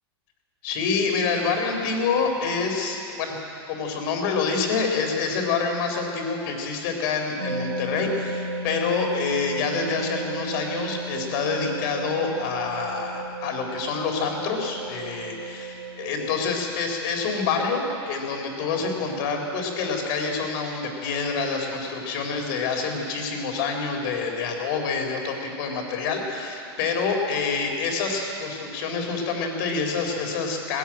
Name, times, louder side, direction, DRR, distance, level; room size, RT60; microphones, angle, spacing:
voice 1, 0.6-3.4 3.7-30.8, left 4 dB, 55° left, 3 dB, 4.1 m, -27 dB
sound 1, 7.4-16.5, right 2 dB, 90° right, 1.8 m, -34 dB
20.0 x 15.0 x 9.1 m, 2.7 s
supercardioid pair, 145°, 14 cm